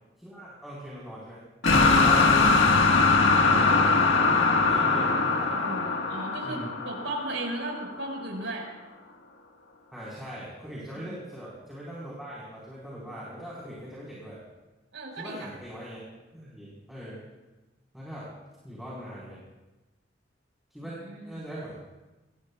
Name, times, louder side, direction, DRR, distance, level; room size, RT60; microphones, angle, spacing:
voice 1, 0.2-1.4 1.7-2.4 3.4-5.7 6.4-6.7 9.9-14.4 15.2-16.0 16.3-17.2 17.9-18.3 18.6-19.4 20.7-21.0 21.3-21.8, equal, ahead, -8 dB, 4.4 m, -40 dB
sound 1, 1.6-7.7, left 3 dB, 90° left, 1.5 m, -21 dB
voice 2, 5.5-8.7 11.0-11.2 14.9-15.5 21.0-21.4, right 2 dB, 90° right, 0 dB, 5.1 m, -36 dB
25.0 x 19.5 x 2.4 m, 1.1 s
head